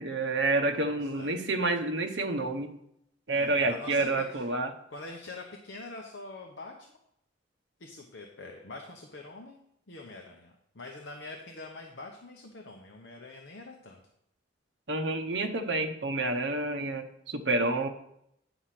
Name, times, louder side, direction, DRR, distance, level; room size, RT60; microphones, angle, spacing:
voice 1, 0.0-2.7 3.3-4.7 14.9-17.9, right 2 dB, 60° right, 5 dB, 0.9 m, -29 dB
voice 2, 0.7-1.4 3.3-4.5 4.9-6.9 7.8-9.6 9.9-14.0, left 2 dB, 65° left, 1 dB, 0.9 m, -44 dB
9.9 x 4.9 x 5.9 m, 0.77 s
head